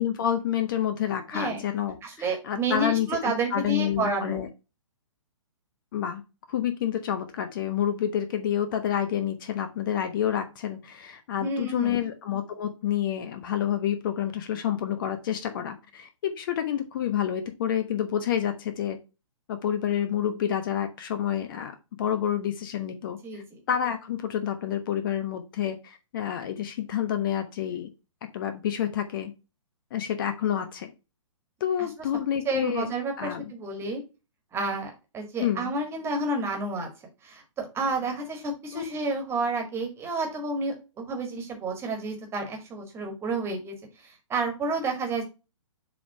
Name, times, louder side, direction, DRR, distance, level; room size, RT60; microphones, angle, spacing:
voice 1, 0.0-4.5 5.9-6.2 6.5-19.0 19.5-21.7 22.0-27.9 28.3-29.3 29.9-30.9 31.6-32.9 33.2-33.4 35.4-35.7 38.7-38.8, left 10 dB, 40° left, 8 dB, 1.1 m, -28 dB
voice 2, 1.3-1.6 2.0-4.5 11.4-12.0 23.2-23.6 31.8-31.9 32.5-34.0 34.5-36.9 37.2-43.7 44.0-45.2, right 3 dB, 15° right, 3 dB, 1.9 m, -30 dB
7.5 x 3.7 x 4.7 m, 0.28 s
figure-of-eight pair, 120°, 17 cm